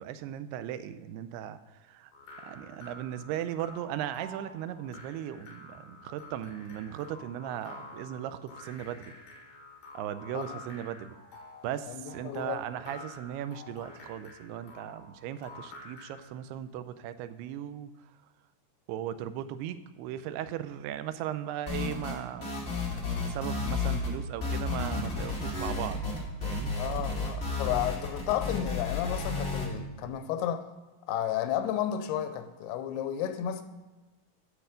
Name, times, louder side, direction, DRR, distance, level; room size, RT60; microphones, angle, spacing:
voice 1, 0.0-1.6 1.9-2.1 2.4-9.1 9.9-11.2 11.6-17.9 18.9-22.5 23.2-26.1 26.4-26.7, right 10 dB, 90° right, 12 dB, 2.6 m, -37 dB
sound 1, 2.1-16.3, left 2 dB, 65° left, 3.4 m, -49 dB
voice 2, 11.9-12.6 26.8-30.7 31.1-33.6, left 10 dB, 85° left, 9 dB, 2.7 m, -32 dB
sound 2, 21.7-22.2 22.4-24.1 24.4-29.7, left 4 dB, 25° left, 1.3 m, -32 dB
10.0 x 6.9 x 5.0 m, 1.2 s
omnidirectional pair, 4.6 m